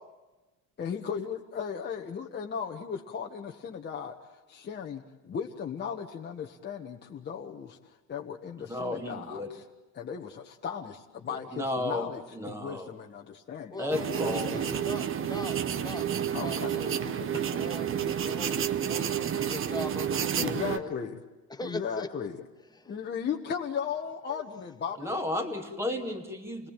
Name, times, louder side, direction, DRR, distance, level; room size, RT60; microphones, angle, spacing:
voice 1, 0.8-9.6 9.9-13.9 14.5-14.8 16.3-16.8 17.3-17.7 20.4-21.2 21.6-22.4 22.8-25.1, left 7 dB, 30° left, 0 dB, 1.5 m, -36 dB
voice 2, 8.6-9.5 11.3-12.9 13.8-14.5 25.0-26.7, left 1 dB, 5° right, 3 dB, 2.8 m, -33 dB
voice 3, 13.7-20.9 21.5-22.1 22.7-23.0 24.3-24.4, left 3 dB, 10° left, 6 dB, 1.9 m, -40 dB
sound 1, 13.9-20.8, right 9 dB, 35° right, 1.1 m, -30 dB
28.5 x 19.5 x 9.1 m, 1.1 s
cardioid pair, 150°, 37 cm